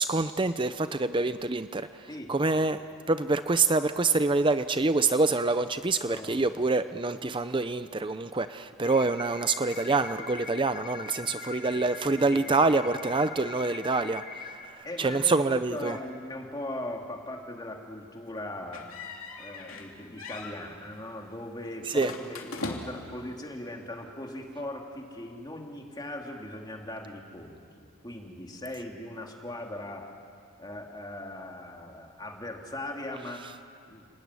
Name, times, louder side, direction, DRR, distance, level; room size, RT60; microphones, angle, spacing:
voice 1, 0.0-2.8 3.1-16.0 21.9-22.1, right 3 dB, 20° right, 11 dB, 0.6 m, -26 dB
voice 2, 6.1-6.4 11.6-11.8 12.1-12.8 14.8-18.9 19.4-30.1 30.6-33.5 33.9-34.1, left 1 dB, 20° left, 1 dB, 2.7 m, -39 dB
sound 1, 8.8-14.6, left 5 dB, 45° left, 2.7 m, -42 dB
sound 2, 18.7-19.9 20.2-20.6 21.9-23.1, left 3 dB, 65° left, 3.0 m, -39 dB
30.0 x 19.5 x 9.7 m, 2.4 s
head